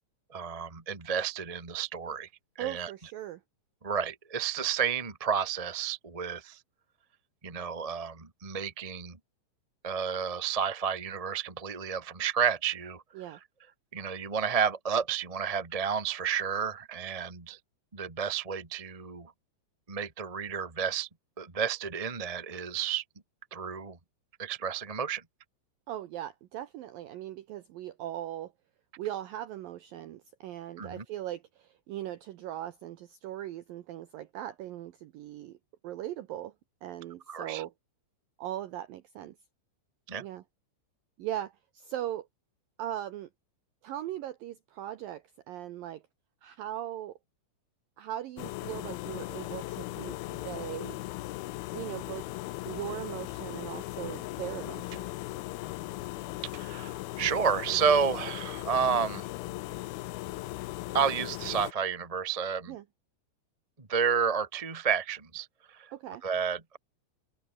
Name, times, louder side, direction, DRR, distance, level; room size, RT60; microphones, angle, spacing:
voice 1, 0.3-2.3 2.6-2.9 3.8-6.6 7.4-9.2 9.8-13.4 13.9-17.6 17.9-19.3 19.9-21.1 21.4-23.0 23.5-24.0 24.4-25.2 30.8-31.0 37.3-37.6 40.1-40.2 56.5-59.3 60.9-62.8 63.8-65.9 66.2-66.8, right 6 dB, 30° right, 0.6 m, -31 dB
voice 2, 2.6-3.4 13.2-13.4 25.9-28.5 29.0-35.6 35.8-36.5 36.8-37.7 38.4-39.4 40.2-40.4 41.2-42.3 42.8-43.3 43.8-46.0 46.4-47.1 48.0-51.0 51.7-52.3 52.7-55.1 62.7-62.8 65.9-66.2, right 12 dB, 80° right, 2.1 m, -39 dB
sound 1, 48.4-61.7, left 19 dB, 85° left, 2.2 m, -38 dB
open air
omnidirectional pair, 5.3 m